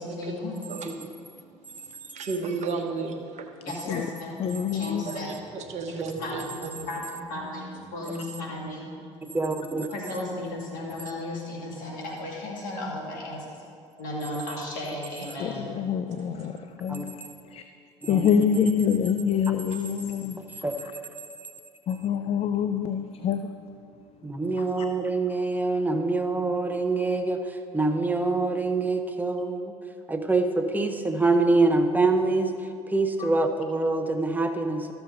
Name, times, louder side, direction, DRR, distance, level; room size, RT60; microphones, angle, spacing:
voice 1, 0.0-0.5 3.7-4.4 4.7-5.3 5.9-8.9 9.9-13.4 14.0-15.7, left 1 dB, 60° left, -2 dB, 2.4 m, -35 dB
voice 2, 0.7-3.7 5.0-6.7 15.2-15.4 16.1-16.6, right 4 dB, 50° right, 5 dB, 1.2 m, -35 dB
voice 3, 4.4-5.0 15.4-16.5 16.8-17.1 17.5-17.6 18.1-20.4 21.9-23.5 33.2-33.3, left 8 dB, 40° left, 9 dB, 0.5 m, -26 dB
voice 4, 9.2-9.9 16.9-17.0 18.0-18.7 20.6-20.7 24.2-29.7 30.1-32.5 32.9-34.9, right 3 dB, 10° right, 6 dB, 0.9 m, -25 dB
13.0 x 7.0 x 3.9 m, 2.5 s
hypercardioid pair, 70°, 15 cm